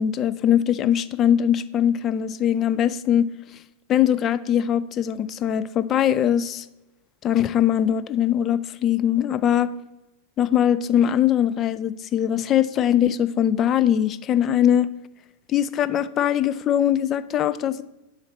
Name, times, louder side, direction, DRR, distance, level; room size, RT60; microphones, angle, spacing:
voice 1, 0.0-3.3 3.9-6.7 7.2-9.7 10.4-14.9 15.5-17.8, left 10 dB, 30° left, 15 dB, 0.3 m, -21 dB
7.1 x 5.1 x 4.1 m, 0.98 s
figure-of-eight pair, 90°, 0 cm